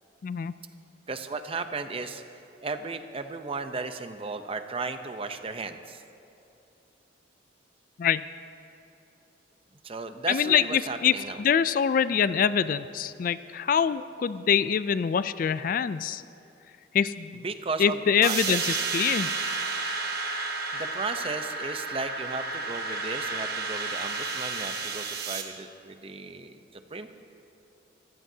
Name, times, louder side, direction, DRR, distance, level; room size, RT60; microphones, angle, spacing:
voice 1, 0.2-0.5 8.0-8.3 10.3-16.2 16.9-17.4 17.8-19.3, left 7 dB, 50° left, 14 dB, 0.3 m, -25 dB
voice 2, 1.1-2.2 2.6-6.0 9.8-11.4 17.4-18.0 18.2-18.6 20.7-27.1, right 3 dB, 30° right, 8 dB, 0.7 m, -35 dB
sound 1, 18.2-25.4, right 4 dB, 55° right, 1.3 m, -31 dB
24.5 x 15.5 x 2.8 m, 2.8 s
head